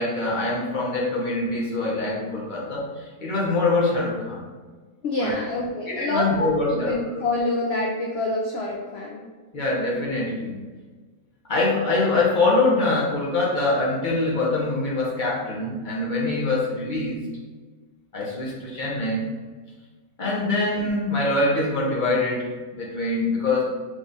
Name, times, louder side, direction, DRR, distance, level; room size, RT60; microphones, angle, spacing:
voice 1, 0.0-2.9 3.2-4.5 5.2-5.4 5.9-7.0 9.5-10.6 11.5-17.3 18.1-19.3 20.2-23.6, left 2 dB, 40° left, -5 dB, 0.8 m, -24 dB
voice 2, 5.0-9.2, left 2 dB, 70° left, -2 dB, 0.6 m, -27 dB
3.7 x 2.3 x 4.0 m, 1.4 s
omnidirectional pair, 1.7 m